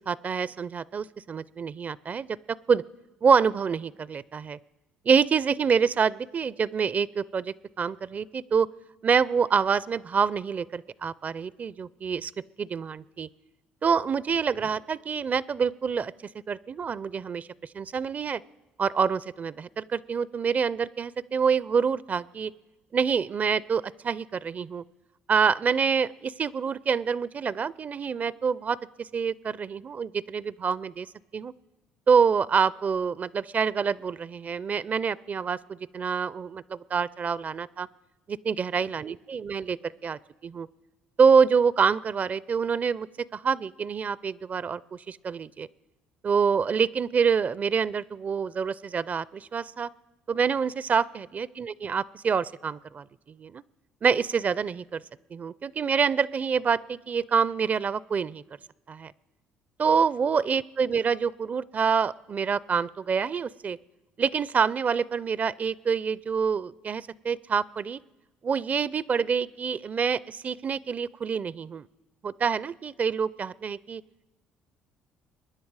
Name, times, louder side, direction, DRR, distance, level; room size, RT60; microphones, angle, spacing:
voice 1, 0.1-2.3 2.7-2.8 3.2-4.6 5.1-8.7 9.0-12.3 12.6-13.3 13.8-16.1 16.5-17.5 17.7-18.4 18.8-22.5 22.9-24.8 25.3-31.1 31.3-31.5 32.1-37.9 38.3-40.7 41.2-43.1 43.3-45.7 46.2-49.9 50.3-53.6 54.0-55.0 55.3-58.4 58.9-59.1 59.8-63.8 64.2-68.0 68.4-71.9 72.2-74.0, right 6 dB, 40° right, 21 dB, 0.4 m, -26 dB
23.0 x 10.0 x 4.8 m, 1.0 s
supercardioid pair, 70°, 4 cm